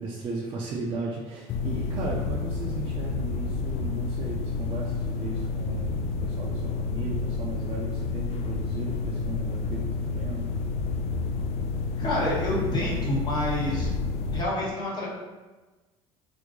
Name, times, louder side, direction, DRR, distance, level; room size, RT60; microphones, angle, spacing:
voice 1, 0.0-10.6, right 3 dB, 45° right, -4 dB, 0.6 m, -36 dB
sound 1, 1.5-14.4, left 4 dB, 55° left, 0.4 m, -30 dB
voice 2, 12.0-13.9 14.3-15.1, left 1 dB, 35° left, -6 dB, 1.4 m, -28 dB
2.9 x 2.5 x 3.7 m, 1.2 s
supercardioid pair, 90°, 13 cm